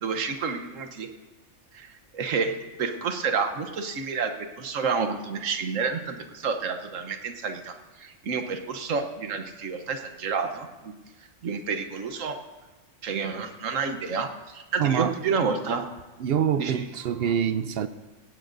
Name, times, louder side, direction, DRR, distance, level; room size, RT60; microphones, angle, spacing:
voice 1, 0.0-1.1 1.7-2.5 2.8-10.9 11.4-12.4 13.0-15.9 16.6-16.8, right 5 dB, 85° right, 7 dB, 1.3 m, -29 dB
voice 2, 14.8-15.1 16.2-17.9, right 8 dB, 60° right, 12 dB, 0.7 m, -25 dB
17.0 x 16.5 x 2.6 m, 1.2 s
omnidirectional pair, 1.3 m